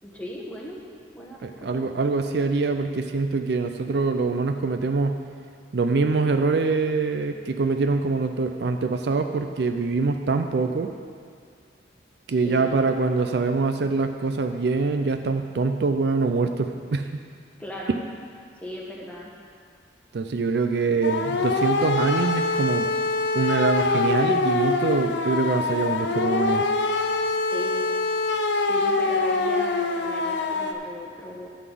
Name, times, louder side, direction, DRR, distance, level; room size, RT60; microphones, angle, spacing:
voice 1, 0.0-0.8 1.1-1.9 12.4-12.8 17.6-18.0 18.6-19.3 27.5-27.9 28.7-31.5, equal, 5° left, -3 dB, 1.2 m, -37 dB
voice 2, 1.4-5.2 5.7-10.9 12.3-17.2 20.1-22.9 23.3-26.6, right 4 dB, 60° right, 6 dB, 0.4 m, -24 dB
sound 1, 21.0-30.7, left 3 dB, 70° left, 0.6 m, -24 dB
11.5 x 4.0 x 7.6 m, 2.2 s
head